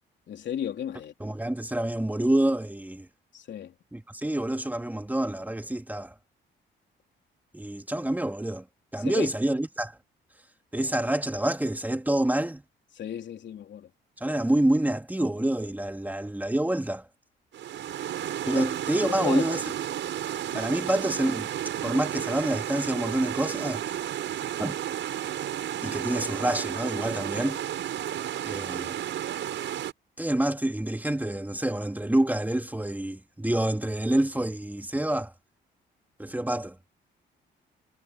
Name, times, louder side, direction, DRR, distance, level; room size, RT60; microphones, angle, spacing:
voice 1, 0.3-1.1 3.3-3.7 9.0-9.3 13.0-13.9 18.6-18.7 19.2-19.5 20.5-20.6, left 9 dB, 65° left, 3.7 m, -34 dB
voice 2, 1.2-3.1 3.9-6.1 7.5-8.6 8.9-10.0 10.7-12.6 14.2-17.1 18.5-19.6 20.5-21.5 21.8-23.8 24.6-24.8 25.8-27.6 28.4-29.0 30.2-35.3 36.2-36.8, right 1 dB, 10° right, 2.5 m, -27 dB
sound 1, 17.5-29.9, right 11 dB, 70° right, 5.6 m, -32 dB
cardioid pair, 90°, 20 cm